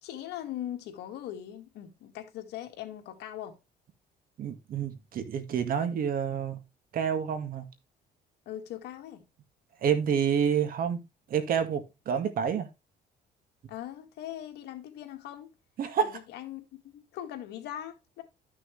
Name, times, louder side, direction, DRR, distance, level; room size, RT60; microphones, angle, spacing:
voice 1, 0.0-3.6 8.5-9.2 13.7-15.5 16.0-16.6 16.9-18.2, left 11 dB, 80° left, 2.0 m, -40 dB
voice 2, 4.4-6.6 6.9-7.7 9.8-11.0 11.3-12.7 15.8-16.2, right 7 dB, 60° right, 1.8 m, -28 dB
12.5 x 6.1 x 3.3 m
cardioid pair, 110°, 17 cm